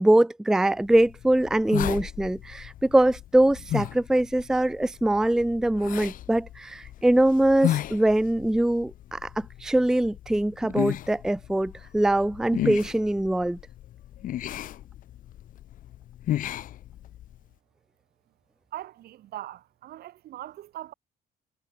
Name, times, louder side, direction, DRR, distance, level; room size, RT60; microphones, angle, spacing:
voice 1, 0.0-13.6, right 1 dB, 5° right, 0.4 m, -23 dB
sound 1, 0.8-17.4, left 12 dB, 55° left, 0.6 m, -35 dB
voice 2, 18.7-20.9, right 14 dB, 65° right, 1.8 m, -40 dB
cardioid pair, 110°, 17 cm